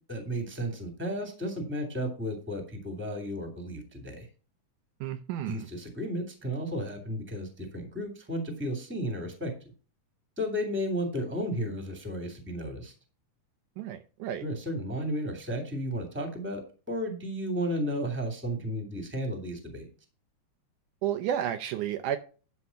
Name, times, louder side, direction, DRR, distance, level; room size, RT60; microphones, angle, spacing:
voice 1, 0.1-4.3 5.4-9.5 10.4-12.9 14.4-16.6 16.9-19.9, equal, 5° right, 2.0 m, -33 dB
voice 2, 5.0-5.6 13.8-14.4 21.0-22.2, right 10 dB, 75° right, 2.1 m, -31 dB
11.5 x 4.7 x 5.8 m
omnidirectional pair, 3.8 m